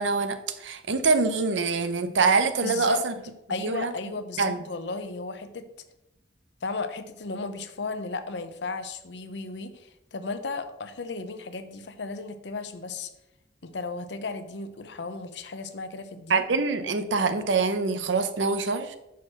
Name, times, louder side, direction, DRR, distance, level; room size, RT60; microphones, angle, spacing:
voice 1, 0.0-3.1 3.6-3.9 4.4-4.6 16.3-19.0, right 4 dB, 90° right, 9 dB, 0.7 m, -25 dB
voice 2, 2.6-3.1 3.5-5.7 6.6-13.1 13.6-16.4, left 3 dB, 70° left, 10 dB, 0.7 m, -35 dB
6.2 x 4.7 x 5.9 m, 0.91 s
head